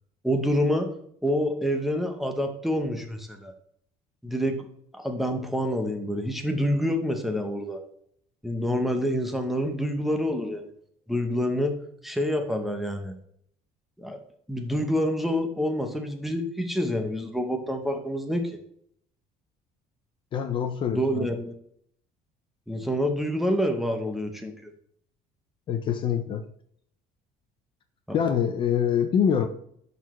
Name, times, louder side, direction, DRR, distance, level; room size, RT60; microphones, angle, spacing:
voice 1, 0.2-0.9 1.2-3.5 4.2-4.6 5.0-7.8 8.4-10.7 11.1-11.7 12.0-13.1 14.0-14.2 14.5-18.6 20.9-21.5 22.7-24.5, equal, ahead, 5 dB, 0.7 m, -27 dB
voice 2, 20.3-21.3 25.7-26.4 28.1-29.5, left 8 dB, 35° left, 8 dB, 0.5 m, -25 dB
11.0 x 4.1 x 3.1 m, 0.68 s
cardioid pair, 175°, 15 cm